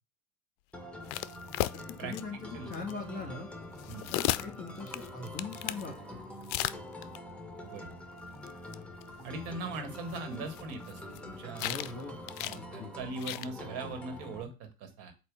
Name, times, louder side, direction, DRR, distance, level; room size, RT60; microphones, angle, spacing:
sound 1, 0.7-14.4, left 1 dB, 5° left, 1.1 m, -45 dB
sound 2, 1.1-2.2 2.7-2.9 3.7-5.9 6.4-7.2 8.5-8.6 8.7-8.8 9.0-9.1 10.0-11.2 11.6-12.0 12.3-12.6 13.2-13.5, left 16 dB, 50° left, 0.4 m, -34 dB
voice 1, 1.7-3.5 4.1-6.2 11.6-12.2 12.5-12.9, left 4 dB, 25° left, -2 dB, 2.5 m, -41 dB
voice 2, 7.6-7.9 9.2-11.7 12.4-15.1, right 3 dB, 55° right, 6 dB, 1.7 m, -40 dB
7.9 x 2.7 x 4.7 m, 0.30 s
hypercardioid pair, 80°, 42 cm